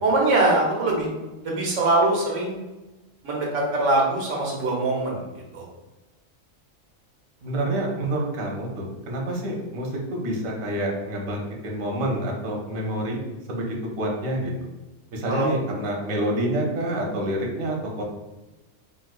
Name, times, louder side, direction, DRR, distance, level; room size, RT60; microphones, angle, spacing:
voice 1, 0.0-1.1 1.4-2.6 3.2-5.2 5.5-5.7 15.3-15.5, right 2 dB, 65° right, -2 dB, 1.2 m, -22 dB
voice 2, 7.4-13.2 13.5-14.5 15.1-18.0, right 1 dB, 85° right, 0 dB, 1.1 m, -28 dB
4.0 x 2.4 x 2.3 m, 1.1 s
omnidirectional pair, 1.4 m